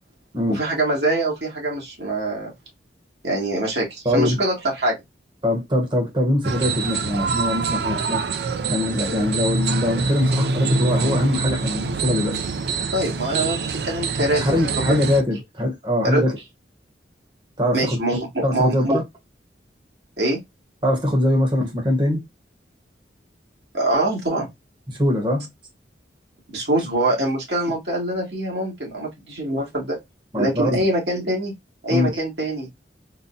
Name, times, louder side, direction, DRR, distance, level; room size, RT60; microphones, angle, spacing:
voice 1, 0.5-2.5 3.2-5.0 12.9-14.4 14.8-15.0 16.0-16.2 17.7-19.0 20.2-20.4 23.7-24.5 26.5-30.0 30.4-31.5 31.8-32.7, right 1 dB, 80° right, 1.9 m, -24 dB
voice 2, 4.0-4.4 5.4-8.3 8.7-12.4 14.4-16.4 17.6-18.0 18.4-19.0 20.8-22.3 24.9-25.5 30.3-30.7 31.9-32.2, left 1 dB, 25° right, 1.0 m, -22 dB
sound 1, 6.4-15.2, right 4 dB, 65° right, 0.4 m, -25 dB
4.0 x 2.2 x 2.6 m
head